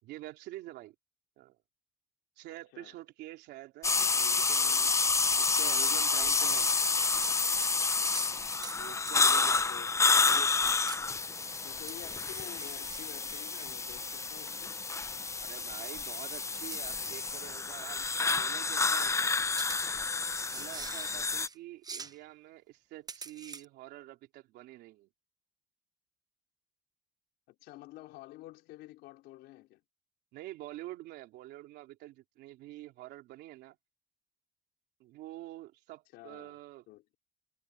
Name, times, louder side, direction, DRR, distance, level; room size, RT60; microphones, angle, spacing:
voice 1, 0.0-0.9 1.4-1.6 2.4-4.9 5.4-6.7 8.8-9.6 15.4-19.3 20.5-25.1 30.3-33.8 35.0-36.8, right 16 dB, 85° right, 3.4 m, -47 dB
sound 1, 3.8-21.5, left 4 dB, 15° left, 0.5 m, -29 dB
sound 2, 7.2-7.4 7.6-7.8 8.0-8.3 8.6-8.8 9.1-9.5 10.3-10.4 10.9-11.0 11.9-14.1 14.5-14.6 16.7-17.1 17.4-17.5 19.6-21.6 21.8-22.2 23.1-23.6, right 5 dB, 20° right, 0.8 m, -45 dB
voice 2, 9.4-10.0 10.3-10.6 11.6-14.8 27.5-29.8 36.1-36.6 36.9-37.1, left 17 dB, 85° left, 4.6 m, -50 dB
cardioid pair, 110°, 17 cm